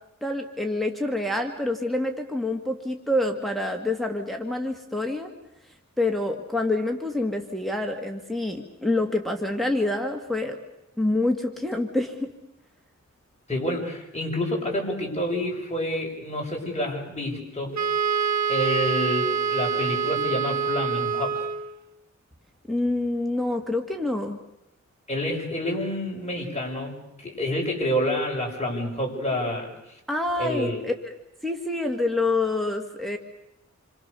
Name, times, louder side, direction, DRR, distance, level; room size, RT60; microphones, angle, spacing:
voice 1, 0.2-5.3 6.0-10.6 11.0-12.3 22.7-24.4 30.1-31.1 31.4-33.2, left 2 dB, ahead, 3 dB, 2.0 m, -27 dB
voice 2, 13.5-18.0 18.5-21.5 25.1-30.0 30.4-30.8, left 1 dB, 20° left, -2 dB, 7.0 m, -28 dB
Wind instrument woodwind instrument, 17.8-21.8, right 6 dB, 70° right, 1.5 m, -26 dB
28.0 x 26.0 x 6.9 m, 0.88 s
wide cardioid pair, 110°, 30 cm